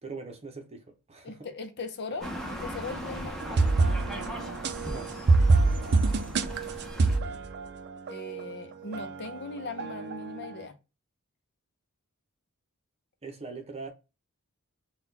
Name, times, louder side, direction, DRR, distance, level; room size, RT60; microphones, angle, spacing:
voice 1, 0.0-1.5 4.8-5.1 13.2-13.9, right 4 dB, 30° right, 0.8 m, -41 dB
voice 2, 1.2-3.4 8.1-10.8, left 3 dB, 55° left, 0.7 m, -39 dB
sound 1, 2.2-7.2, equal, ahead, 0.8 m, -38 dB
sound 2, 3.4-8.6 8.9-10.5, right 3 dB, 50° right, 0.5 m, -26 dB
4.1 x 2.4 x 3.9 m
head